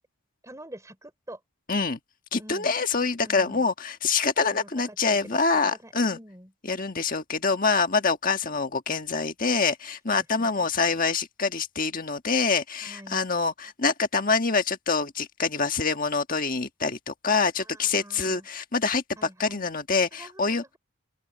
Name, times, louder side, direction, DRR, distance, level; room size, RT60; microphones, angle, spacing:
voice 1, 0.4-1.4 2.4-2.7 3.2-3.6 4.5-6.5 10.1-10.7 12.8-13.2 17.6-18.5 19.2-19.7 20.1-20.8, right 1 dB, 15° right, 4.1 m, -46 dB
voice 2, 1.7-2.0 2.3-6.2 6.6-20.6, left 4 dB, 40° left, 1.6 m, -25 dB
open air
head